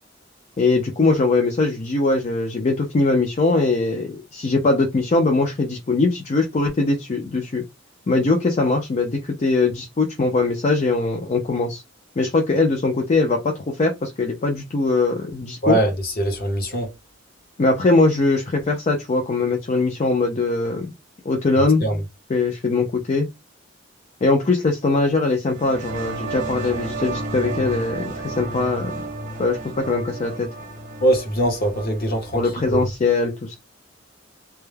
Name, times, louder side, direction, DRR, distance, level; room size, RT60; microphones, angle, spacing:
voice 1, 0.6-7.6 8.1-11.8 12.2-15.8 17.6-20.9 21.3-21.8 22.3-23.3 24.2-28.9 29.4-30.5 32.3-33.6, left 3 dB, 35° left, 0.4 m, -21 dB
voice 2, 15.6-16.9 21.8-22.0 31.0-32.4 32.7-32.8, right 1 dB, 50° left, 0.8 m, -22 dB
sound 1, 25.5-32.8, right 2 dB, 45° right, 0.8 m, -32 dB
2.2 x 2.1 x 3.2 m
head